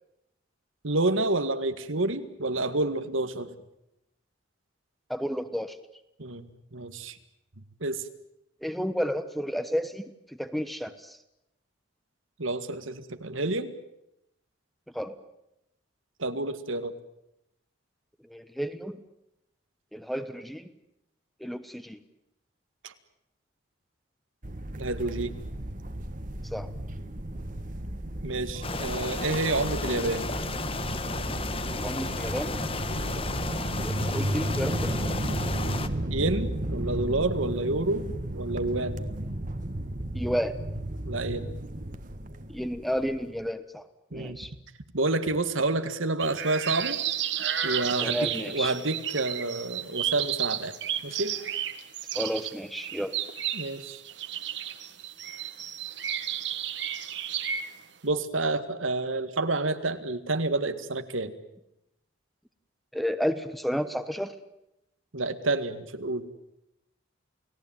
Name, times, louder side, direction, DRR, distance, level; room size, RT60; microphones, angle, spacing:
voice 1, 0.8-3.5 6.2-7.2 7.8-8.1 12.4-13.7 16.2-16.9 22.8-22.9 24.8-25.3 28.2-30.3 32.9-33.2 36.1-38.1 38.3-39.0 41.1-41.5 44.1-44.4 44.9-47.0 47.6-50.7 51.0-51.4 53.5-54.0 58.0-61.3 65.1-66.3, right 2 dB, 85° right, 9 dB, 1.9 m, -29 dB
voice 2, 5.1-5.8 8.6-10.1 10.4-11.2 14.9-15.1 18.3-19.0 19.9-20.7 21.4-22.0 26.5-26.7 31.8-32.6 33.5-35.0 40.1-40.5 42.5-43.8 44.1-44.5 48.0-48.7 52.1-53.1 62.9-64.3, equal, ahead, 11 dB, 1.1 m, -31 dB
sound 1, 24.4-43.4, right 1 dB, 40° right, 1.6 m, -33 dB
sound 2, 28.6-35.9, left 3 dB, 30° left, 1.2 m, -34 dB
sound 3, 46.2-57.7, right 10 dB, 65° right, 1.7 m, -32 dB
29.5 x 18.0 x 9.0 m, 0.86 s
head